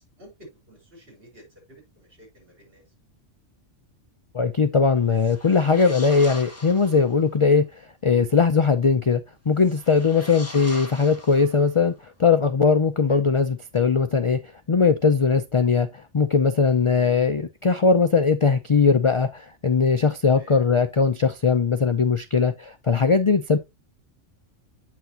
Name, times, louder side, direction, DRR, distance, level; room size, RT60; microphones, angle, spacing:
voice 1, 0.0-2.8 4.9-5.3 10.1-10.3 13.1-13.2 20.4-20.6, equal, 50° right, 4.6 m, -50 dB
voice 2, 4.3-7.7 8.0-9.2 9.5-11.9 12.2-14.4 14.7-15.9 16.1-23.6, left 5 dB, 50° left, 0.3 m, -20 dB
sound 1, 5.1-7.2 9.6-11.9, left 1 dB, 15° left, 1.0 m, -41 dB
8.1 x 6.0 x 2.8 m
omnidirectional pair, 1.2 m